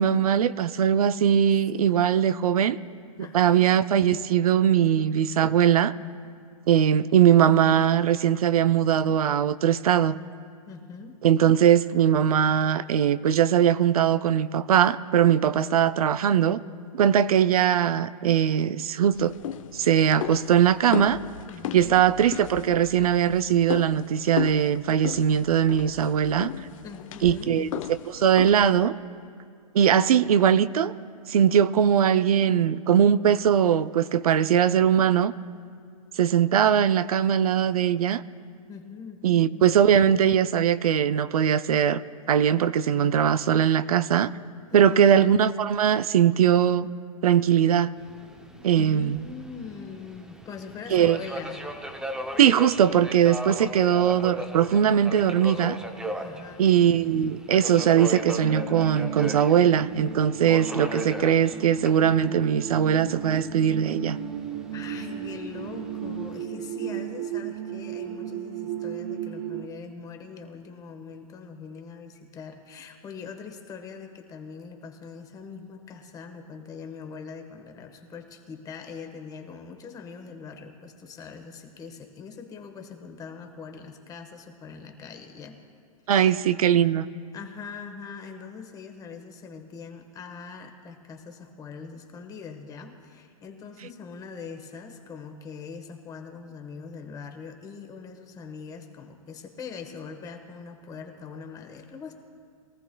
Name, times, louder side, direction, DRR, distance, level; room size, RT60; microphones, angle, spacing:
voice 1, 0.0-2.8 3.3-5.9 6.7-10.2 11.2-16.6 16.9-19.3 19.7-21.2 21.7-26.5 27.2-28.9 29.7-30.9 31.3-35.3 36.2-38.2 39.2-42.0 42.3-44.3 44.7-46.9 47.2-47.9 48.6-49.2 50.9-51.2 52.4-55.8 56.6-64.2 86.1-87.1, right 9 dB, 85° right, 15 dB, 0.5 m, -21 dB
voice 2, 3.2-3.7 10.7-11.2 15.2-15.6 21.4-22.0 26.8-27.6 38.7-39.6 44.7-45.2 48.8-51.6 56.2-56.7 64.7-85.6 86.1-86.5 87.3-102.1, left 5 dB, 20° left, 4 dB, 1.2 m, -42 dB
sound 1, 19.1-28.9, left 10 dB, 65° left, 0.7 m, -36 dB
Subway metro underground, 48.0-66.4, equal, 5° right, 0.6 m, -38 dB
sound 2, 57.8-69.7, right 8 dB, 50° right, 1.0 m, -35 dB
22.5 x 14.0 x 2.3 m, 2.2 s
hypercardioid pair, 135°, 18 cm